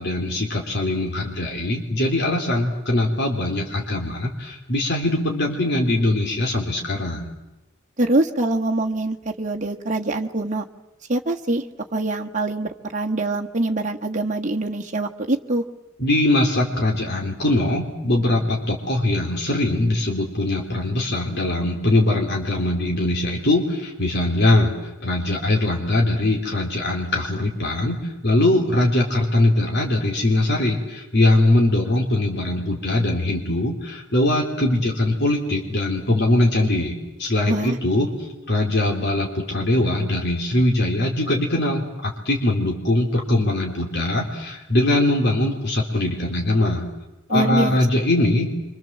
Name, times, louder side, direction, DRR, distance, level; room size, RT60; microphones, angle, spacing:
voice 1, 0.0-7.3 16.0-24.7 25.0-38.1 38.5-46.9 47.3-48.5, left 1 dB, 55° left, 0 dB, 3.6 m, -21 dB
voice 2, 8.0-10.6 11.1-11.6 11.9-15.6 37.5-37.8 47.3-47.8, right 2 dB, 35° right, 1 dB, 1.5 m, -24 dB
28.5 x 25.0 x 7.6 m, 1.0 s
head